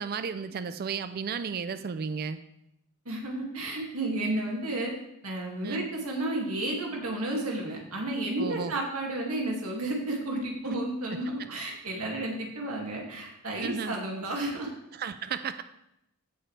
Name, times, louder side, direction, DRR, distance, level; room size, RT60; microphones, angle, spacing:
voice 1, 0.0-2.4 5.6-5.9 8.4-8.7 13.6-13.9 14.9-15.6, right 6 dB, 45° right, 11 dB, 0.4 m, -33 dB
voice 2, 3.1-4.9 5.2-14.7, right 1 dB, 75° right, -1 dB, 2.2 m, -32 dB
15.5 x 6.0 x 3.3 m, 0.81 s
head